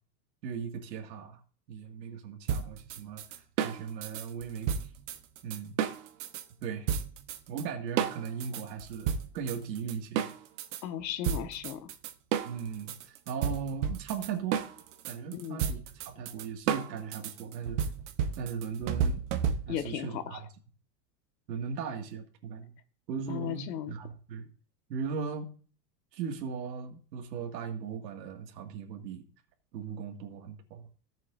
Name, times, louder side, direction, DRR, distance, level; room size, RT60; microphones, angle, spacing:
voice 1, 0.4-1.4 1.7-4.9 5.4-5.8 6.6-6.9 7.5-10.3 12.4-14.6 15.1-17.8 18.4-19.2 19.7-20.4 21.5-22.7 23.1-24.5 24.9-25.6 26.1-29.2 29.7-30.9, right 6 dB, 90° right, 2 dB, 2.2 m, -38 dB
sound 1, 2.5-6.4 6.9-7.6 8.0-10.8 11.2-19.9, right 8 dB, 45° right, 1.1 m, -32 dB
voice 2, 10.8-11.9 15.3-15.7 19.7-20.4 23.3-23.9, left 10 dB, 85° left, 8 dB, 1.6 m, -36 dB
17.0 x 7.5 x 2.6 m, 0.41 s
supercardioid pair, 175°, 49 cm